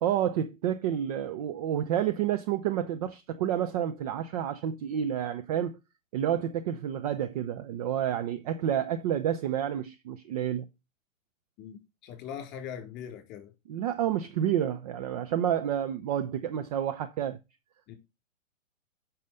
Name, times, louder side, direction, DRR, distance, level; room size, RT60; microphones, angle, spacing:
voice 1, 0.0-5.8 6.1-10.7 13.7-17.4, right 10 dB, 30° right, 0.5 m, -29 dB
voice 2, 11.6-13.5 17.9-18.0, left 8 dB, 25° left, 4.0 m, -41 dB
9.3 x 5.7 x 5.0 m
figure-of-eight pair, 120°, 40 cm